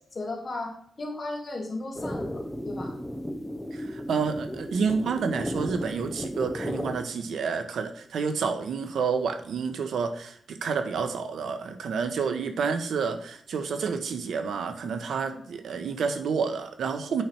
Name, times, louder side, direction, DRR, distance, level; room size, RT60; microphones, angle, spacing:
voice 1, 0.1-3.0, left 2 dB, 35° left, 0 dB, 2.3 m, -35 dB
sound 1, 2.0-7.0, equal, 5° left, 0.7 m, -34 dB
voice 2, 3.7-17.2, right 5 dB, 85° right, 8 dB, 1.0 m, -29 dB
8.5 x 5.7 x 4.4 m, 0.64 s
wide cardioid pair, 170°, 0 cm